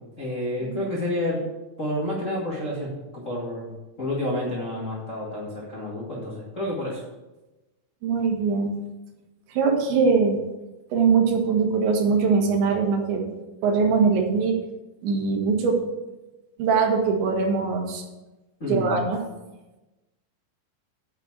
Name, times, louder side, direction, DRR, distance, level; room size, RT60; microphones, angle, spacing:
voice 1, 0.2-1.4 1.8-7.0 18.6-19.0, left 1 dB, 70° left, -5 dB, 0.7 m, -29 dB
voice 2, 8.0-8.8 9.5-10.4 10.9-13.4 13.6-14.6 15.0-15.8 16.6-18.1 18.7-19.2, right 5 dB, 75° right, 2 dB, 3.6 m, -22 dB
7.8 x 7.4 x 7.4 m, 1.1 s
omnidirectional pair, 5.5 m